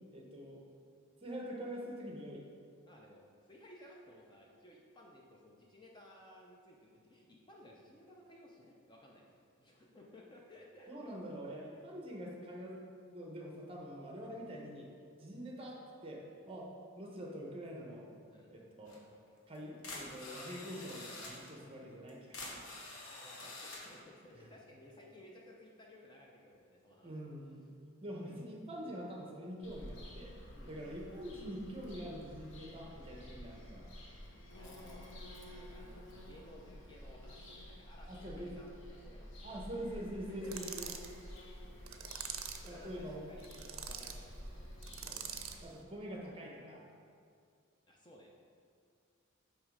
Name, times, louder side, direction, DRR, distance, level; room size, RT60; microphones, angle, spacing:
voice 1, 0.1-0.6 1.2-2.5 10.9-12.8 13.1-14.9 15.2-16.7 17.0-18.1 18.5-19.0 19.5-22.7 24.4-24.5 27.0-27.6 28.0-30.4 30.7-33.9 38.1-38.6 39.4-40.9 42.7-43.2 45.0-45.3 45.6-46.9, equal, 25° right, -1 dB, 0.9 m, -45 dB
voice 2, 2.9-11.1 14.3-14.5 18.3-18.5 23.1-27.1 30.5-30.8 34.5-35.1 35.5-39.5 40.3-40.9 42.6-43.5 43.8-44.5 47.9-48.5, left 1 dB, 20° left, -2 dB, 0.6 m, -58 dB
sound 1, 18.9-19.0 19.5-19.6 19.8-21.5 22.1-24.0, left 2 dB, 80° left, 1.1 m, -47 dB
Bird vocalization bird call bird song, 29.6-45.6, equal, 60° left, 0.9 m, -51 dB
sound 2, 40.4-41.1 41.9-42.7 43.4-44.2 44.8-45.6, right 8 dB, 70° right, 0.5 m, -44 dB
8.2 x 3.1 x 5.0 m, 2.3 s
head